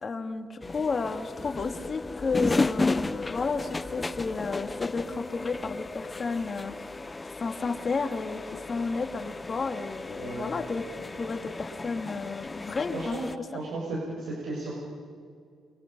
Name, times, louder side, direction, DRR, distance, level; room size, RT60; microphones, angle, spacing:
voice 1, 0.0-6.9 7.4-10.8 11.2-13.3, left 4 dB, 40° left, 5 dB, 2.3 m, -32 dB
sound 1, 0.6-13.4, left 3 dB, 20° left, 0.6 m, -34 dB
voice 2, 10.2-10.5 12.9-13.2 13.5-14.7, right 2 dB, 80° right, -4 dB, 6.0 m, -34 dB
28.5 x 24.5 x 5.5 m, 2.2 s
cardioid pair, 90°, 0 cm